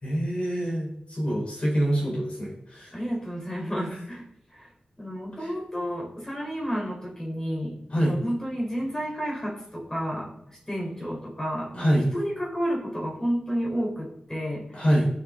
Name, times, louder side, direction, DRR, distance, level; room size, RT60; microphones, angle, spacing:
voice 1, 0.0-2.9 5.4-5.5 7.9-8.2 11.7-12.1 14.7-15.1, equal, 45° left, -3 dB, 4.6 m, -25 dB
voice 2, 2.9-4.2 4.5-4.7 5.0-14.8, equal, 20° left, -3 dB, 4.5 m, -31 dB
14.5 x 7.0 x 3.9 m, 0.79 s
wide cardioid pair, 75°, 3 cm